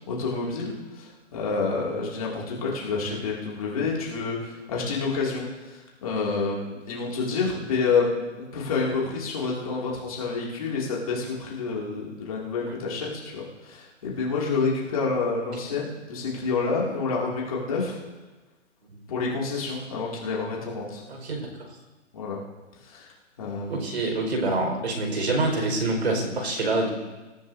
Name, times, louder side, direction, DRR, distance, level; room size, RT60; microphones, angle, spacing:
voice 1, 0.1-18.0 19.1-21.0 22.1-22.4 22.8-23.1 23.4-23.9, left 4 dB, 30° left, -4 dB, 2.5 m, -28 dB
voice 2, 21.1-21.4 23.7-26.9, right 2 dB, 55° right, 2 dB, 4.9 m, -26 dB
25.0 x 14.5 x 2.7 m, 1.2 s
hypercardioid pair, 170°, 38 cm